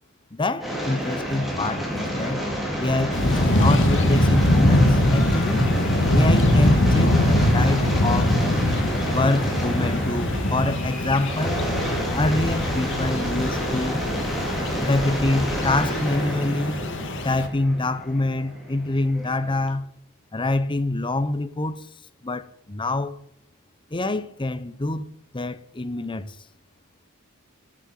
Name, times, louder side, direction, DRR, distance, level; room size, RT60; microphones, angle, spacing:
voice 1, 0.3-2.5 2.8-5.7 6.1-8.4 9.1-11.6 12.1-14.0 14.8-16.8 17.2-19.9 20.3-21.9 22.2-23.2 23.9-25.0 25.3-26.4, left 2 dB, 25° left, 0.8 m, -26 dB
sound 1, 0.6-19.7, equal, ahead, 4.2 m, -29 dB
sound 2, 3.1-17.5, left 1 dB, 65° left, 1.7 m, -22 dB
Bass guitar, 6.9-13.2, equal, 55° right, 1.4 m, -36 dB
11.0 x 10.5 x 7.6 m
head